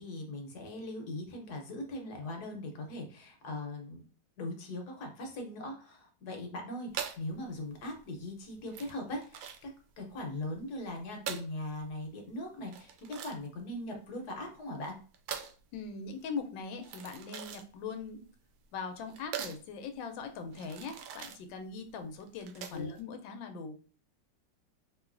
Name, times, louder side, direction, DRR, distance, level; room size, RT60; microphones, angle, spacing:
voice 1, 0.0-4.0 4.4-15.0 22.7-22.9, left 1 dB, 65° left, 2 dB, 1.3 m, -40 dB
sound 1, 6.9-23.0, right 8 dB, 85° right, 1.3 m, -44 dB
voice 2, 15.7-18.3 18.7-23.7, left 5 dB, 85° left, 6 dB, 1.4 m, -41 dB
3.8 x 3.0 x 2.5 m, 0.38 s
omnidirectional pair, 2.0 m